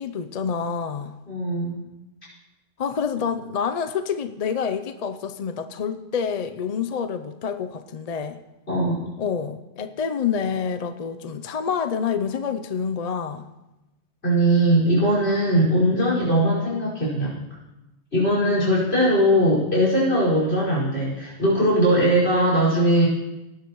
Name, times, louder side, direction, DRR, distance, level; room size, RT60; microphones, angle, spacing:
voice 1, 0.0-1.1 2.8-8.4 9.2-13.5 15.7-15.8, left 6 dB, 45° left, 9 dB, 0.5 m, -27 dB
voice 2, 1.3-1.8 8.7-9.0 14.2-17.4 18.1-23.1, right 1 dB, 65° left, -5 dB, 5.4 m, -20 dB
19.0 x 10.5 x 3.0 m, 0.99 s
omnidirectional pair, 1.1 m